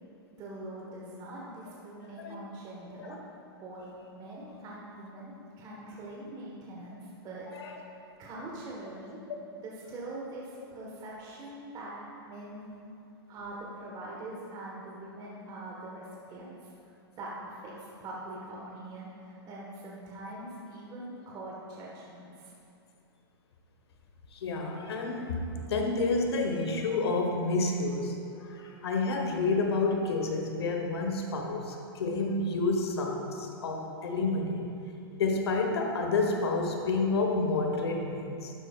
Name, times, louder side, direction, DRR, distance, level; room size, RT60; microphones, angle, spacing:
voice 1, 0.4-3.2 3.6-3.8 4.1-7.9 8.2-9.2 9.6-11.9 12.2-12.7 13.3-22.5, right 1 dB, 30° right, -4 dB, 1.4 m, -43 dB
voice 2, 24.3-25.4 25.7-34.7 35.1-38.5, left 3 dB, 80° left, 3 dB, 1.3 m, -29 dB
11.5 x 7.9 x 2.4 m, 2.6 s
hypercardioid pair, 130°, 13 cm